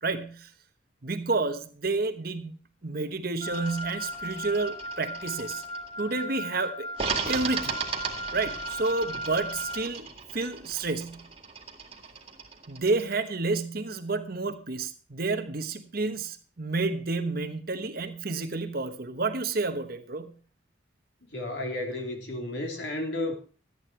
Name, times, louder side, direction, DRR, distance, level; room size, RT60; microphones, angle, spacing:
voice 1, 0.0-0.5 1.0-2.5 2.8-5.6 6.0-6.9 7.3-7.8 8.3-10.1 10.3-11.2 12.7-20.3, right 3 dB, 50° right, 1.1 m, -30 dB
Wind instrument woodwind instrument, 3.4-9.9, left 1 dB, 25° left, 1.5 m, -37 dB
sound 1, 3.4-6.1 6.9-13.1, right 5 dB, 30° right, 2.0 m, -37 dB
voice 2, 21.3-23.3, left 1 dB, 60° left, 3.0 m, -32 dB
13.0 x 9.4 x 4.5 m
head